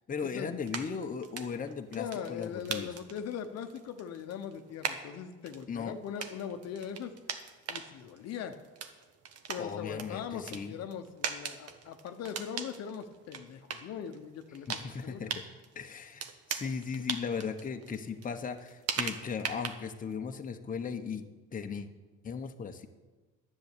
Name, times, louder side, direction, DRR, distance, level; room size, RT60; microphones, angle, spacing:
voice 1, 0.1-2.9 5.7-5.9 9.6-10.7 14.7-15.3 15.7-21.9 22.2-22.9, left 6 dB, 25° left, 5 dB, 1.1 m, -37 dB
sound 1, 0.6-20.1, right 6 dB, 55° right, 1.4 m, -41 dB
voice 2, 1.9-7.1 7.7-8.6 9.5-15.2, left 8 dB, 55° left, 7 dB, 1.1 m, -40 dB
10.5 x 7.7 x 8.5 m, 1.2 s
supercardioid pair, 85°, 30 cm